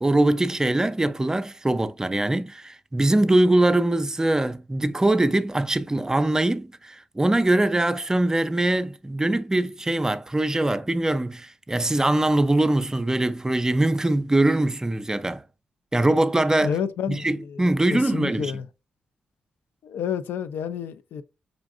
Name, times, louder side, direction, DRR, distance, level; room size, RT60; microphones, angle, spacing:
voice 1, 0.0-15.4 15.9-16.7 17.1-18.5, right 1 dB, 15° right, 0.4 m, -22 dB
voice 2, 16.6-18.7 19.8-21.2, left 7 dB, 85° left, 0.3 m, -30 dB
4.9 x 2.5 x 2.4 m
cardioid pair, 60°, 4 cm